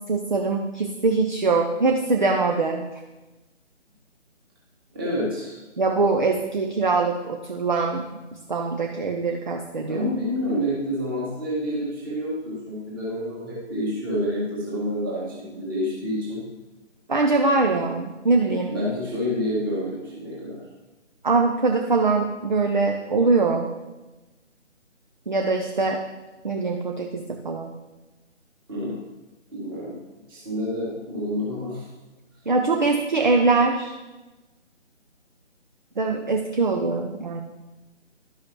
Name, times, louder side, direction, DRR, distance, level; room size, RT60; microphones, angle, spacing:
voice 1, 0.1-2.9 5.8-8.0 8.5-10.0 17.1-18.7 21.2-23.7 25.3-26.0 26.4-27.7 32.5-33.9 36.0-37.4, right 3 dB, 40° right, 3 dB, 0.5 m, -22 dB
voice 2, 4.9-5.6 9.8-16.4 18.7-20.6 28.7-29.0 29.5-30.0 30.3-31.9, equal, 20° right, -5 dB, 1.9 m, -28 dB
11.5 x 5.6 x 3.0 m, 1.1 s
figure-of-eight pair, 150°, 36 cm